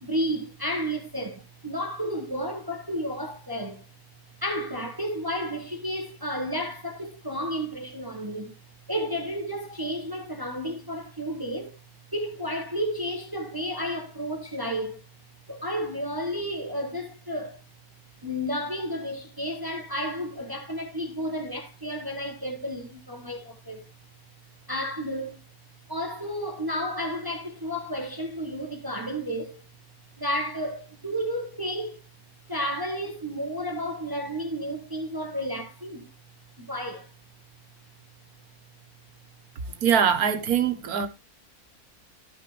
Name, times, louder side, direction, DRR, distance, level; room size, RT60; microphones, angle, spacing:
voice 1, 0.0-3.8 4.4-8.5 8.9-11.8 12.1-15.0 15.5-17.6 18.2-23.8 24.7-25.4 25.9-29.6 30.2-32.0 32.5-36.1 36.6-37.1, equal, 15° right, 1.2 m, -32 dB
voice 2, 39.5-41.1, right 7 dB, 75° right, 1.6 m, -23 dB
13.5 x 5.9 x 3.2 m
omnidirectional pair, 1.6 m